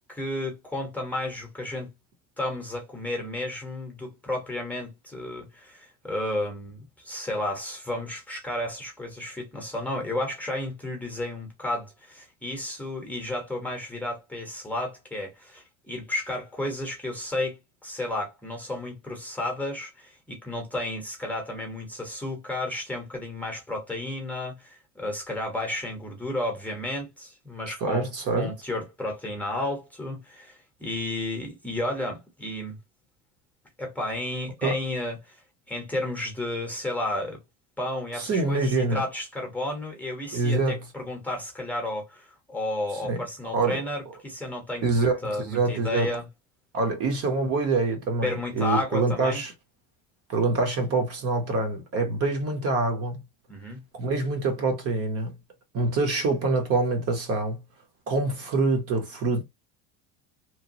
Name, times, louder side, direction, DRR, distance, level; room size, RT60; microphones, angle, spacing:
voice 1, 0.1-1.9 2.4-28.1 28.3-32.8 33.8-35.4 35.7-37.4 37.8-46.3 48.2-49.4 53.5-53.8, left 1 dB, 5° left, 0.9 m, -32 dB
voice 2, 27.8-28.5 34.6-34.7 38.1-39.0 40.3-40.8 43.0-43.2 43.5-43.8 44.8-46.1 46.7-49.5 50.3-53.2 53.9-55.3 55.7-57.6 58.1-59.4, right 3 dB, 40° right, 0.9 m, -25 dB
3.0 x 2.1 x 2.7 m
cardioid pair, 140°, 37 cm